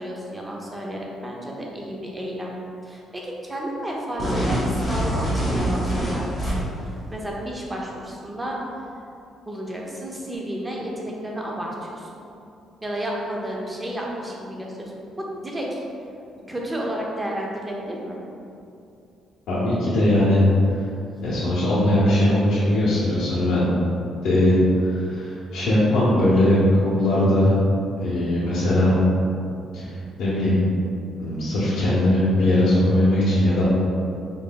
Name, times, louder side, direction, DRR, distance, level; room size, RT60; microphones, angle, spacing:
voice 1, 0.0-2.6 2.8-4.6 4.9-6.4 6.8-8.6 9.5-12.1 12.8-15.8 16.5-18.2, right 1 dB, 10° right, -2 dB, 0.5 m, -32 dB
sound 1, 4.2-6.8, equal, 10° left, 1.1 m, -24 dB
voice 2, 19.5-20.4 21.2-23.7 24.2-27.5 27.8-28.9 29.7-30.6 31.2-33.6, left 1 dB, 75° left, -10 dB, 0.7 m, -20 dB
3.8 x 3.8 x 2.2 m, 2.6 s
cardioid pair, 170°, 0 cm